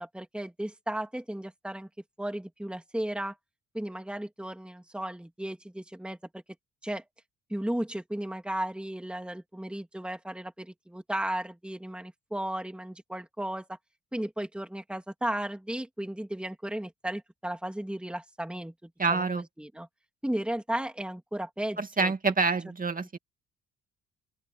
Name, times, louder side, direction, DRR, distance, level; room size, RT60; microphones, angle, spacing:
voice 1, 0.0-1.9 2.2-3.4 3.7-6.4 6.8-7.0 7.5-13.8 14.1-19.9 20.2-22.1 23.0-23.2, right 1 dB, 5° right, 2.5 m, -35 dB
voice 2, 19.0-19.4 21.8-23.2, right 4 dB, 30° right, 2.6 m, -27 dB
open air
cardioid pair, 90°, 30 cm